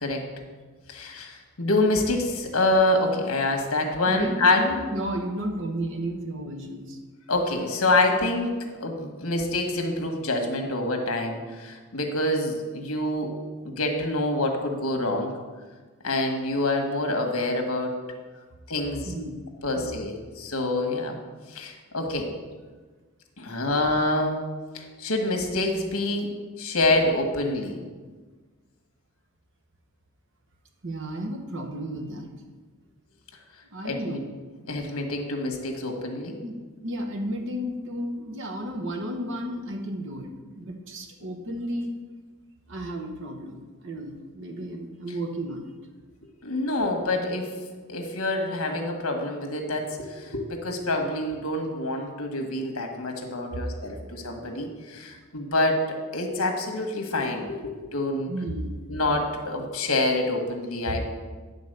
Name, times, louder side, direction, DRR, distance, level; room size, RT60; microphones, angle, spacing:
voice 1, 0.9-4.6 7.3-8.5 8.8-13.3 13.6-15.3 16.0-18.0 18.7-19.1 19.6-21.1 21.5-22.3 23.4-24.4 24.7-26.3 26.6-27.8 33.8-34.2 34.7-36.4 46.4-47.5 47.9-58.3 58.9-61.1, left 2 dB, 75° left, 3 dB, 1.4 m, -26 dB
voice 2, 4.1-7.0 19.0-19.4 19.7-20.0 30.8-32.3 33.7-34.2 36.4-36.6 36.8-42.0 42.7-45.7 53.5-53.6 58.3-58.8, right 1 dB, 60° right, 4 dB, 1.1 m, -33 dB
10.5 x 4.0 x 6.6 m, 1.4 s
head